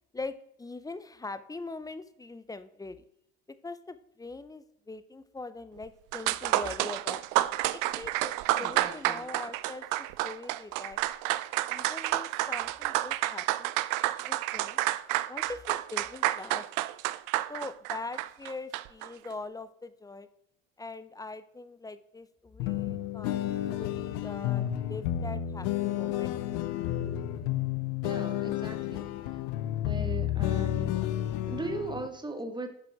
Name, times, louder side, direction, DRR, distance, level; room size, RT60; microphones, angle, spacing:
voice 1, 0.1-3.0 3.6-7.2 7.7-11.0 11.7-13.7 14.2-14.8 15.3-16.7 17.5-20.3 20.8-23.5 23.8-26.4, left 3 dB, 10° left, 13 dB, 0.5 m, -42 dB
sound 1, 5.8-5.9 6.1-19.1, right 16 dB, 70° right, 0.5 m, -30 dB
voice 2, 8.6-9.3 28.0-29.1 29.8-31.0 31.5-32.7, right 2 dB, 15° right, 7 dB, 1.3 m, -38 dB
sound 2, 22.6-32.1, left 12 dB, 80° left, 0.7 m, -31 dB
7.4 x 4.9 x 4.7 m, 0.77 s
supercardioid pair, 85°, 34 cm